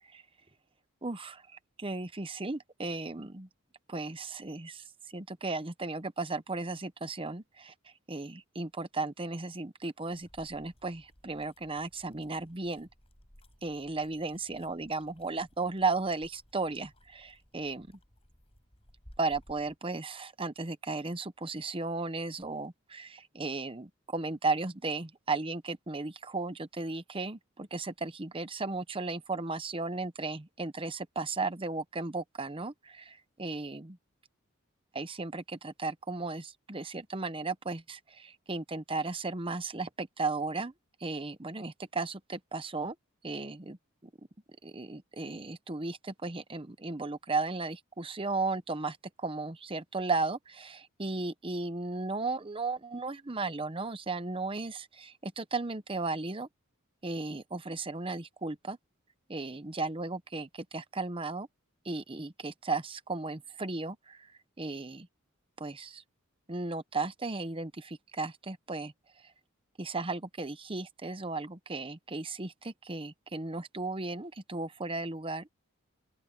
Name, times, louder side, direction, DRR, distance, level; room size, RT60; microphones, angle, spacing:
voice 1, 1.0-1.4 1.8-3.5 3.9-7.7 8.1-12.9 13.6-17.9 19.2-34.0 34.9-40.7 41.0-42.9 43.2-43.8 44.6-56.5 57.0-58.8 59.3-61.5 61.8-64.3 64.6-65.1 65.6-66.0 66.5-68.9 69.8-75.5, right 3 dB, 25° right, 0.9 m, -35 dB
sound 1, 10.1-19.8, equal, 25° left, 7.8 m, -60 dB
open air
head